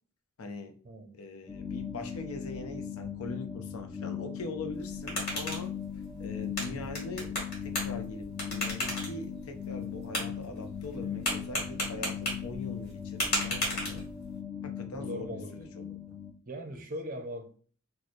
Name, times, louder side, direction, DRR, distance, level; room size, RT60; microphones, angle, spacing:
voice 1, 0.4-0.8 1.1-5.7 6.2-14.1 14.6-16.2 16.7-16.8, left 2 dB, 75° left, 0.6 m, -42 dB
sound 1, 1.5-16.3, left 8 dB, 30° left, 0.5 m, -39 dB
sound 2, 4.7-14.4, left 1 dB, 45° left, 1.7 m, -36 dB
voice 2, 14.9-15.6 16.5-17.6, equal, 40° right, 0.5 m, -40 dB
3.1 x 2.0 x 4.1 m
head